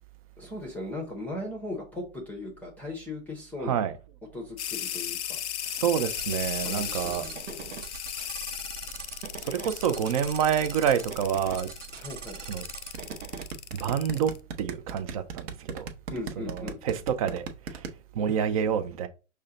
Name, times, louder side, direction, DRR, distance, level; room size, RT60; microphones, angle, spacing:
voice 1, 0.4-3.8 4.3-5.4 6.6-7.7 11.9-12.4 16.1-16.8, left 2 dB, 5° left, 0.6 m, -38 dB
voice 2, 3.6-3.9 5.6-7.2 9.4-11.7 12.5-12.6 13.7-14.3 14.6-15.8 16.5-17.9 18.1-19.1, right 8 dB, 30° right, 0.4 m, -28 dB
sound 1, 4.6-14.4, left 10 dB, 65° left, 0.6 m, -36 dB
sound 2, 5.9-13.4, right 7 dB, 85° right, 0.9 m, -42 dB
sound 3, 12.9-17.9, right 6 dB, 55° right, 0.8 m, -36 dB
5.4 x 2.2 x 3.7 m
hypercardioid pair, 130°, 37 cm